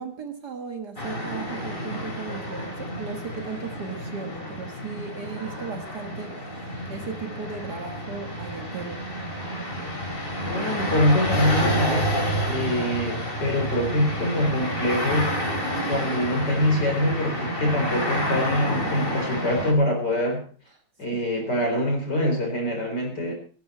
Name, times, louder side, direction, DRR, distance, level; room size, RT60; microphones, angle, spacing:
voice 1, 0.0-9.0, right 5 dB, 55° right, 5 dB, 2.1 m, -36 dB
sound 1, 1.0-19.7, equal, 25° left, 3.5 m, -29 dB
voice 2, 10.5-12.1 12.4-15.4 15.9-20.4 21.0-23.3, left 1 dB, 55° left, 2 dB, 4.9 m, -24 dB
17.0 x 14.0 x 4.3 m, 0.41 s
omnidirectional pair, 2.2 m